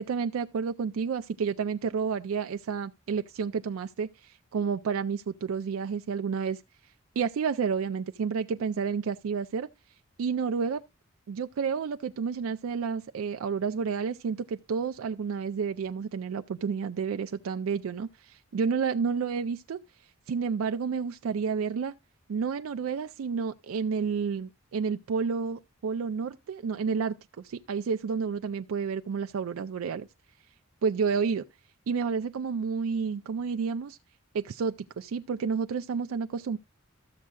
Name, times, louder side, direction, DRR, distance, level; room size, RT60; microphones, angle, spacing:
voice 1, 0.0-6.6 7.2-9.7 10.2-10.8 11.3-19.8 20.3-21.9 22.3-30.1 30.8-31.5 31.9-34.0 34.3-36.6, right 6 dB, 75° right, 0.4 m, -30 dB
13.5 x 7.4 x 2.3 m
head